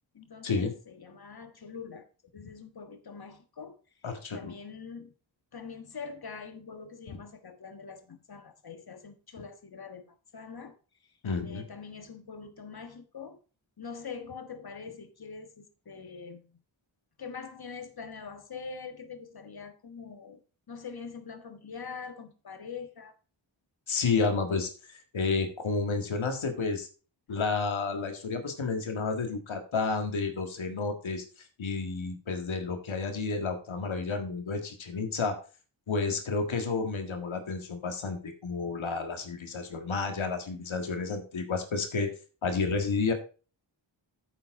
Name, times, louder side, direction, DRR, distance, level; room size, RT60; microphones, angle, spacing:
voice 1, 0.1-2.1 2.3-3.8 4.3-5.1 5.5-10.7 11.4-13.4 13.8-16.5 17.2-20.4 20.7-23.1 27.3-27.4, left 5 dB, 50° left, 1.5 m, -44 dB
voice 2, 4.0-4.5 11.2-11.6 23.9-26.9 27.3-31.2 31.6-35.4 35.9-42.1 42.4-43.1, left 4 dB, 80° left, 1.8 m, -31 dB
9.4 x 7.1 x 3.7 m
wide cardioid pair, 80°, 46 cm